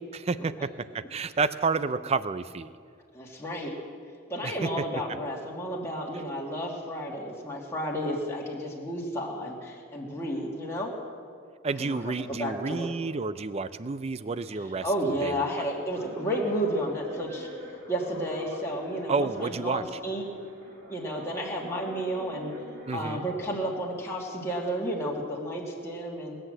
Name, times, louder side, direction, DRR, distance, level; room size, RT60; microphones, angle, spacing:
voice 1, 0.1-0.7 0.9-2.7 4.4-4.7 11.6-14.8 15.2-15.6 19.1-20.0 22.8-23.2, right 4 dB, 30° right, 14 dB, 0.4 m, -30 dB
voice 2, 3.1-3.7 4.3-10.9 11.8-12.1 12.4-12.9 14.8-17.5 17.9-20.2 20.9-22.5 22.9-26.4, equal, 15° left, -4 dB, 2.0 m, -32 dB
sound 1, 15.9-23.4, equal, 60° right, 2.1 m, -44 dB
19.5 x 8.0 x 7.6 m, 2.2 s
head